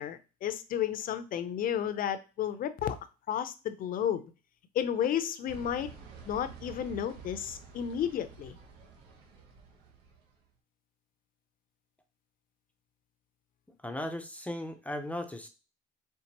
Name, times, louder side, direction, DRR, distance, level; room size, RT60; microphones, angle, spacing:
voice 1, 0.0-3.0 3.3-4.2 4.7-5.9 6.3-8.6, left 9 dB, 55° left, 12 dB, 0.5 m, -32 dB
sound 1, 5.5-10.3, right 6 dB, 90° right, 1.2 m, -49 dB
voice 2, 13.7-15.5, left 1 dB, 10° left, 5 dB, 0.5 m, -37 dB
4.5 x 3.4 x 2.9 m, 0.32 s
cardioid pair, 110°, 17 cm